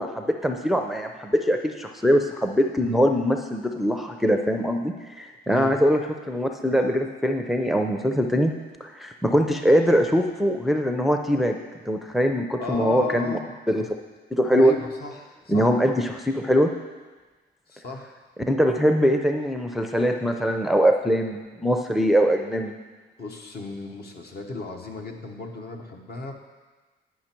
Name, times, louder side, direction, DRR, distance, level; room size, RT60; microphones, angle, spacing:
voice 1, 0.0-6.0 6.3-8.5 8.8-11.6 11.9-13.4 13.7-13.8 14.3-14.7 15.5-16.7 18.5-22.7, equal, ahead, 4 dB, 0.5 m, -22 dB
voice 2, 12.6-13.5 14.6-15.7 17.7-18.1 22.0-22.1 23.2-26.3, left 3 dB, 55° left, 2 dB, 1.2 m, -35 dB
9.9 x 5.9 x 4.5 m, 1.3 s
cardioid pair, 90°, 20 cm